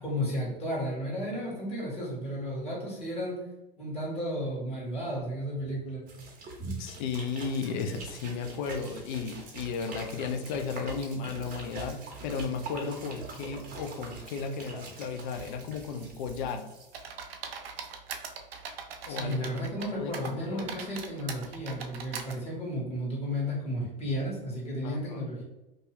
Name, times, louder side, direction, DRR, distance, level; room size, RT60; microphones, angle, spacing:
voice 1, 0.0-3.4 3.8-6.0 6.6-6.8 19.1-25.4, equal, 20° left, -4 dB, 1.2 m, -33 dB
sound 1, 6.1-17.0, right 3 dB, 30° right, 0.7 m, -44 dB
voice 2, 6.8-16.7 19.1-19.5 19.8-20.8 24.8-25.2, left 5 dB, 55° left, 6 dB, 0.5 m, -34 dB
sound 2, 16.9-19.9 20.1-22.3, right 6 dB, 80° right, 0.5 m, -40 dB
2.6 x 2.3 x 3.2 m, 1.0 s
hypercardioid pair, 100°, 30 cm